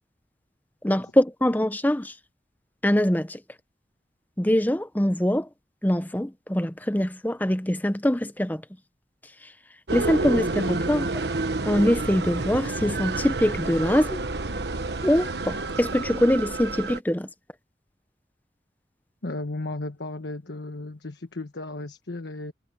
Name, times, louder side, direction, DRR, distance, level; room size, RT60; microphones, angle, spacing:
voice 1, 0.8-2.1 2.8-3.4 4.4-5.5 5.8-8.6 9.9-11.1 11.7-14.2 15.0-17.3, equal, 10° left, 0.8 m, -23 dB
sound 1, 9.9-17.0, right 3 dB, 80° right, 1.3 m, -29 dB
voice 2, 19.2-22.5, left 2 dB, 85° left, 1.3 m, -34 dB
head